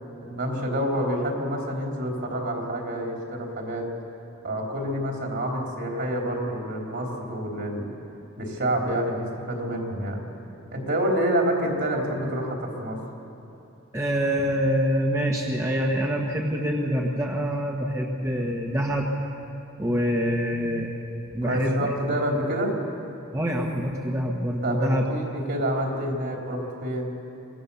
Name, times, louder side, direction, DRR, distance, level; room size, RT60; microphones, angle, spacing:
voice 1, 0.2-3.9 4.4-7.9 8.4-10.2 10.7-13.0 21.4-22.8 24.6-27.1, right 1 dB, 55° right, 0 dB, 3.7 m, -28 dB
voice 2, 13.9-19.1 19.8-20.9 21.3-21.9 22.3-22.4 23.3-25.1, equal, 15° right, -1 dB, 1.3 m, -25 dB
24.5 x 17.0 x 7.0 m, 2.9 s
head